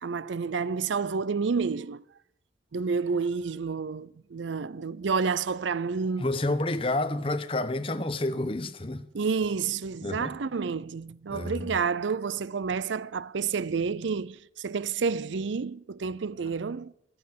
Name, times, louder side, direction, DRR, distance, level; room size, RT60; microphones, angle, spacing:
voice 1, 0.0-2.0 2.7-6.3 9.1-16.9, right 5 dB, 90° right, 0.5 m, -29 dB
voice 2, 6.2-9.1 10.0-10.3 11.3-11.7, left 2 dB, 30° left, 1.0 m, -29 dB
13.5 x 13.0 x 7.4 m
head